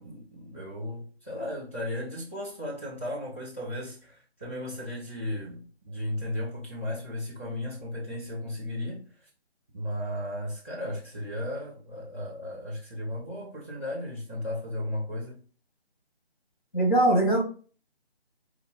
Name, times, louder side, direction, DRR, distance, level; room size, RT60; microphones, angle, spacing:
voice 1, 0.0-9.3 9.7-15.4, left 1 dB, 10° left, 0.6 m, -35 dB
voice 2, 16.7-17.4, right 1 dB, 50° left, 2.0 m, -21 dB
4.5 x 2.2 x 3.8 m
figure-of-eight pair, 155°, 32 cm